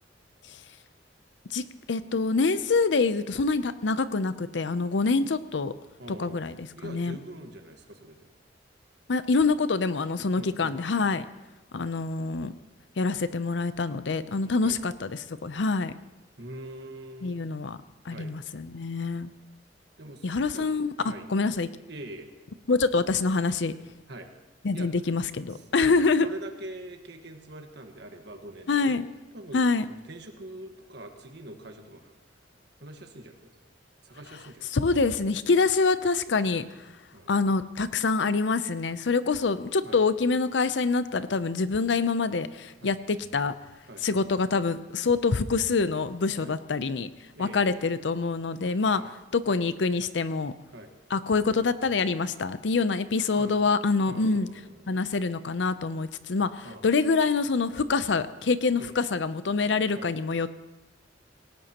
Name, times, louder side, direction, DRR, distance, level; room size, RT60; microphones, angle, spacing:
voice 1, 1.5-5.7 6.1-7.2 9.1-11.2 11.7-12.5 13.0-15.9 17.2-17.8 18.0-19.3 20.2-21.7 22.7-23.7 24.6-26.3 28.7-29.0 29.5-29.9 34.7-36.7 37.3-43.5 44.0-47.1 47.4-49.0 49.3-50.5 51.1-54.5 54.9-60.5, left 4 dB, 75° left, 13 dB, 0.6 m, -26 dB
voice 2, 6.0-6.4 6.8-8.3 10.4-10.8 14.6-14.8 16.4-17.4 18.1-18.3 20.0-20.6 21.0-21.3 21.9-22.3 24.1-24.3 24.7-24.9 25.5-29.0 29.3-32.4 32.8-33.5 34.0-34.8 37.1-37.3 39.8-40.0 42.8-42.9 43.9-44.1 46.4-46.5 47.3-47.9 48.9-49.1 50.7-50.9 53.3-53.6 54.1-54.9 56.6-56.9 58.8-59.0 59.9-60.1, right 1 dB, 65° right, 4 dB, 1.5 m, -43 dB
18.0 x 17.5 x 3.0 m, 1.1 s
head